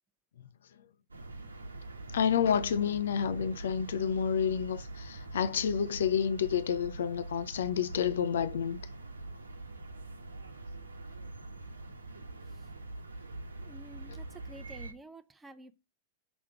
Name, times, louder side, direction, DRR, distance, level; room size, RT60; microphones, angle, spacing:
sound 1, 1.1-14.9, right 2 dB, 80° right, 1.0 m, -44 dB
voice 1, 2.1-8.8 14.1-14.2, left 8 dB, 65° left, 0.5 m, -29 dB
voice 2, 13.6-15.7, right 1 dB, 10° right, 0.8 m, -50 dB
6.1 x 3.6 x 5.7 m
figure-of-eight pair, 95°, 0 cm